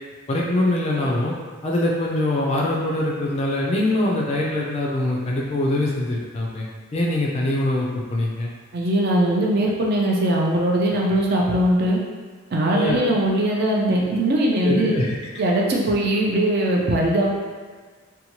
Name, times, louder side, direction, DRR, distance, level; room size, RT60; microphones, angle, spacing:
voice 1, 0.3-1.3 1.6-6.6 6.9-8.5 11.5-11.6 12.7-13.0 14.6-15.1 17.2-17.3, left 1 dB, 30° left, -3 dB, 0.3 m, -23 dB
voice 2, 8.7-12.0 12.5-14.9 15.4-17.3, right 1 dB, 45° right, -2 dB, 0.4 m, -20 dB
2.7 x 2.2 x 2.9 m, 1.5 s
head